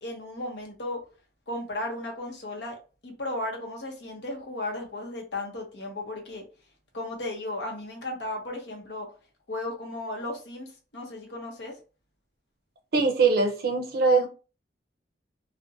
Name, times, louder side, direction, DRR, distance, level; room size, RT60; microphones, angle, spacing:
voice 1, 0.0-1.0 1.5-2.8 3.0-6.4 6.9-9.1 9.5-11.8, left 1 dB, 65° left, 0.7 m, -35 dB
voice 2, 12.9-14.3, right 4 dB, 55° right, 0.5 m, -22 dB
2.5 x 2.1 x 2.6 m
head